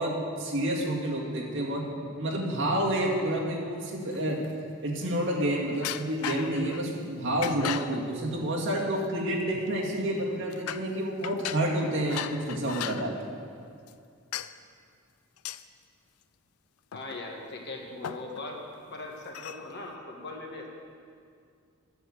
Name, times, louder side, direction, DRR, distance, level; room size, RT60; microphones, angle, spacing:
voice 1, 0.0-4.4 4.8-13.3, right 1 dB, 55° right, -4 dB, 2.2 m, -29 dB
sound 1, 4.1-4.8 5.8-6.9 7.4-8.0 9.0-9.1 9.5-10.0 10.5-10.9 11.2-13.1 13.9-14.0 14.3-14.5 15.4-15.6 16.9-17.5 17.7-17.8 18.0-18.5 19.3-19.6, left 10 dB, 85° left, 0.4 m, -37 dB
voice 2, 16.9-18.6 18.9-20.7, left 2 dB, 50° left, 1 dB, 1.5 m, -39 dB
10.5 x 7.6 x 7.9 m, 2.3 s
head